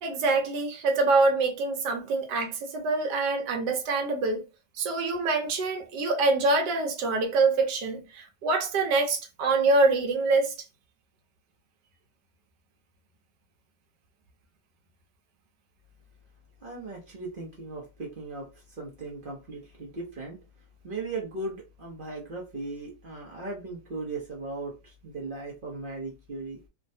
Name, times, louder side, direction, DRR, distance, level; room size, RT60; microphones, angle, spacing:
voice 1, 0.0-4.4 4.8-10.5, right 3 dB, 70° right, 1.3 m, -25 dB
voice 2, 16.6-20.4 20.8-26.6, right 3 dB, 45° right, 0.6 m, -37 dB
3.6 x 2.2 x 2.7 m
omnidirectional pair, 2.1 m